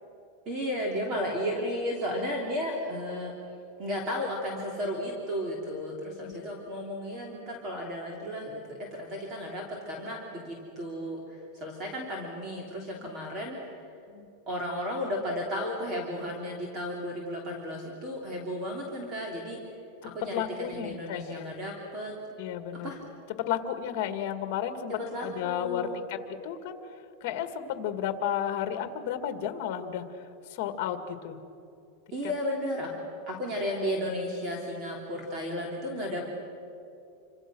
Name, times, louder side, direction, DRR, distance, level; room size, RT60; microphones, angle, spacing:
voice 1, 0.4-3.3 3.8-13.8 14.5-19.6 20.0-22.1 22.8-23.0 24.9-25.9 32.1-32.9 33.3-36.3, equal, 25° right, -1 dB, 3.2 m, -34 dB
voice 2, 20.3-21.6 22.4-23.1 23.4-26.8 27.2-30.0 30.5-31.4 32.2-32.3, left 9 dB, 45° left, 8 dB, 2.1 m, -33 dB
27.5 x 26.0 x 6.3 m, 2.7 s
supercardioid pair, 170°, 0 cm